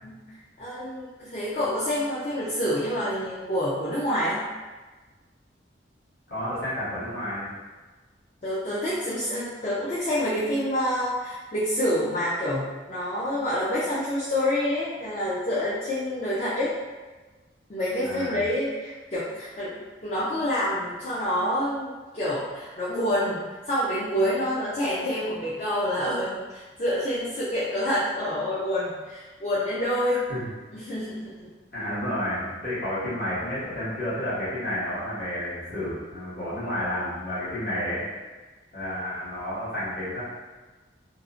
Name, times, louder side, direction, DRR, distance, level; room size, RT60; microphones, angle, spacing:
voice 1, 0.6-4.4 8.4-16.7 17.7-30.3 30.7-31.5, left 1 dB, 35° left, -10 dB, 0.4 m, -27 dB
voice 2, 6.3-7.5 18.0-18.4 30.3-30.5 31.7-38.1 38.7-40.2, left 1 dB, 55° left, -11 dB, 1.2 m, -31 dB
2.6 x 2.0 x 2.4 m, 1.3 s
head